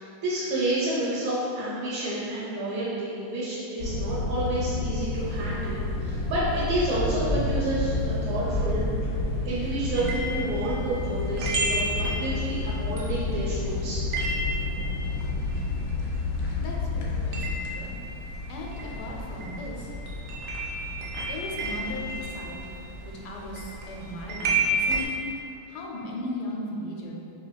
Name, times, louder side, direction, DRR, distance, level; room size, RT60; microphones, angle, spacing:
voice 1, 0.0-8.9 9.4-14.0, right 1 dB, 85° right, -8 dB, 1.7 m, -29 dB
sound 1, 3.8-22.3, left 3 dB, 70° left, 1.1 m, -31 dB
sound 2, 5.1-25.0, equal, 40° left, 0.9 m, -37 dB
sound 3, 9.9-16.5 16.8-25.1, right 2 dB, 70° right, 1.0 m, -32 dB
voice 2, 16.6-17.9 18.5-19.9 21.3-22.6 23.0-25.0 25.3-25.4 25.7-27.1, left 1 dB, 90° left, -2 dB, 1.5 m, -37 dB
5.7 x 2.9 x 2.2 m, 2.8 s
omnidirectional pair, 2.3 m